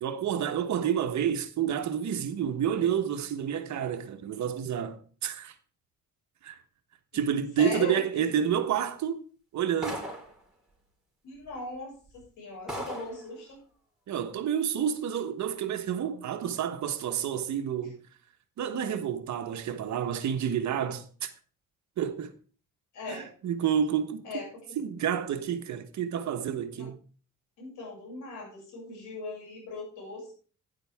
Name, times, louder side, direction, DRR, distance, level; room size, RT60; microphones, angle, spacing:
voice 1, 0.0-5.5 6.4-6.6 7.1-9.2 9.5-10.0 14.1-18.0 18.6-21.3 22.0-22.3 23.1-24.2 24.8-27.0, right 8 dB, 65° right, 1.3 m, -29 dB
voice 2, 7.6-8.0 8.3-8.4 11.2-13.6 22.9-23.3 24.2-24.8 26.7-26.9 27.6-30.3, left 3 dB, 90° left, 6.9 m, -39 dB
sound 1, 9.8-10.4 11.4-11.5 12.1-12.2 12.7-13.2, equal, ahead, 4.4 m, -37 dB
12.0 x 10.0 x 3.6 m
cardioid pair, 90°, 30 cm